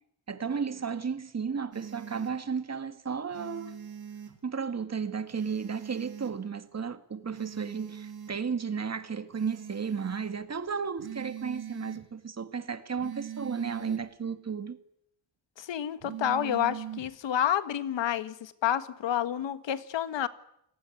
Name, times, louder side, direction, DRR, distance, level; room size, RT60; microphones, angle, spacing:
voice 1, 0.3-3.7 4.4-14.8, right 6 dB, 35° right, 2.1 m, -34 dB
sound 1, 1.7-2.3 3.3-4.3 5.3-6.3 7.3-8.3 9.3-10.3 11.0-12.0 13.0-14.0 16.0-17.1, right 9 dB, 55° right, 3.8 m, -41 dB
voice 2, 15.6-20.3, left 10 dB, 70° left, 1.6 m, -29 dB
29.0 x 19.0 x 9.8 m
cardioid pair, 100°, 45 cm